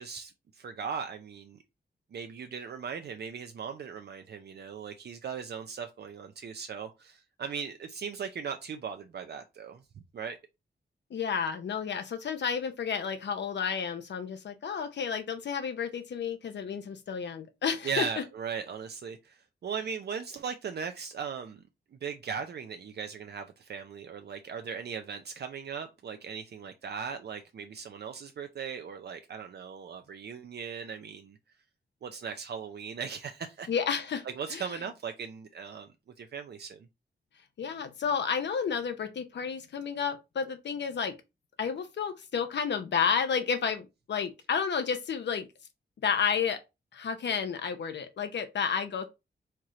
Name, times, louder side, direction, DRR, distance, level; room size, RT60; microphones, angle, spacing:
voice 1, 0.0-1.6 2.1-9.8 10.1-10.4 17.8-21.6 21.9-31.4 32.0-33.7 34.2-36.9, right 6 dB, 65° right, 0.5 m, -38 dB
voice 2, 11.1-18.1 33.7-34.2 34.5-34.6 37.6-41.1 41.6-45.5 46.0-46.6 46.9-49.1, left 6 dB, 75° left, 0.7 m, -31 dB
4.4 x 3.2 x 3.7 m
wide cardioid pair, 130°, 18 cm